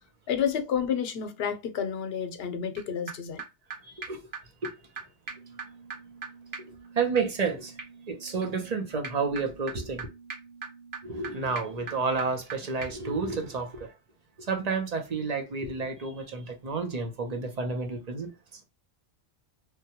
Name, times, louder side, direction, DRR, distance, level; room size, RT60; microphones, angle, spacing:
voice 1, 0.3-3.4, left 7 dB, 70° left, 0.9 m, -30 dB
sound 1, 2.8-2.9 3.1-3.2 3.4-3.5 3.7-3.8 4.0-4.1 4.3-4.4 4.6-4.7 5.0-5.1 5.3-12.5 12.8-12.9, right 5 dB, 70° right, 1.3 m, -42 dB
voice 2, 3.8-4.2 4.6-4.7 6.9-7.7 8.1-10.1 11.0-13.9 14.4-18.3, right 4 dB, 45° right, 0.8 m, -30 dB
3.3 x 2.2 x 2.8 m
omnidirectional pair, 1.1 m